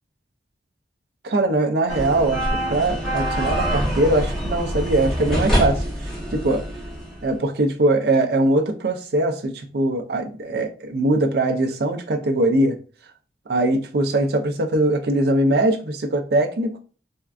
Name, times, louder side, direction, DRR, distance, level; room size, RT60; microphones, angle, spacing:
voice 1, 1.2-6.6 7.2-12.8 13.5-16.8, right 2 dB, 60° right, 5 dB, 0.4 m, -21 dB
sound 1, 1.9-7.3, equal, 5° left, 0.8 m, -25 dB
3.5 x 2.2 x 2.3 m, 0.39 s
head